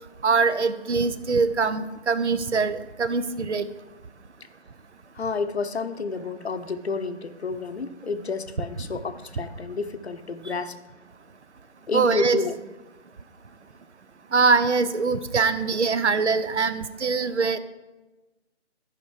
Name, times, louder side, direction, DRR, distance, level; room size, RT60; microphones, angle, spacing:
voice 1, 0.2-3.7 11.9-12.4 14.3-17.6, right 4 dB, 75° right, 13 dB, 0.8 m, -23 dB
voice 2, 5.1-10.8 11.9-12.6, left 4 dB, 65° left, 10 dB, 0.8 m, -30 dB
14.0 x 5.1 x 4.7 m, 1.1 s
figure-of-eight pair, 160°, 35 cm